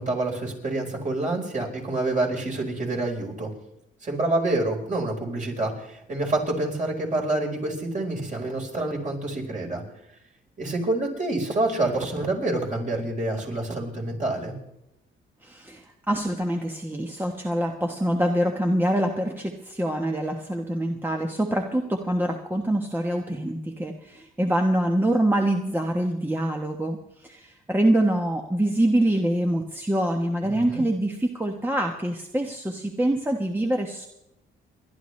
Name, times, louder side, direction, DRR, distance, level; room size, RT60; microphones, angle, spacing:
voice 1, 0.0-3.5 4.0-9.8 10.6-14.6 30.4-30.8, right 2 dB, 40° right, 0 dB, 4.4 m, -27 dB
voice 2, 15.4-34.1, right 1 dB, 10° right, 3 dB, 1.2 m, -25 dB
29.0 x 11.0 x 3.2 m, 0.84 s
cardioid pair, 90°, 20 cm